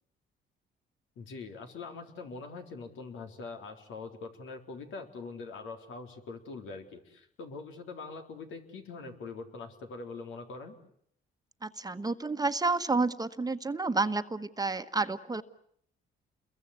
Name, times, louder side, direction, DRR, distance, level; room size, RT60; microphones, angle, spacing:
voice 1, 1.2-10.8, left 4 dB, 80° left, 5 dB, 3.9 m, -43 dB
voice 2, 11.6-15.4, right 3 dB, 20° right, 9 dB, 1.3 m, -30 dB
29.0 x 22.5 x 8.5 m, 0.67 s
cardioid pair, 90°, 20 cm